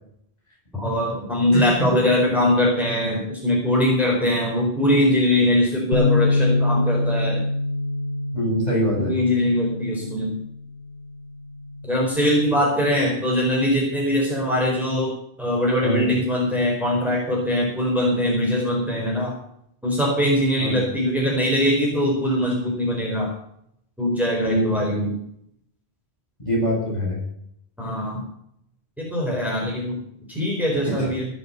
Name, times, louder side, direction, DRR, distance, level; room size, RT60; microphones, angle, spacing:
voice 1, 0.7-7.4 9.0-10.4 11.8-15.1 15.4-19.4 19.8-23.3 24.0-25.2 27.8-28.2 29.0-30.0 30.3-31.3, left 1 dB, ahead, -4 dB, 4.3 m, -22 dB
voice 2, 1.5-2.0 8.3-9.1 15.8-16.1 20.6-20.9 24.4-24.8 26.4-27.2 30.8-31.1, equal, 40° left, -3 dB, 7.7 m, -24 dB
Bass guitar, 5.9-12.2, left 2 dB, 85° left, 1.9 m, -25 dB
17.0 x 6.5 x 8.1 m, 0.72 s
omnidirectional pair, 1.1 m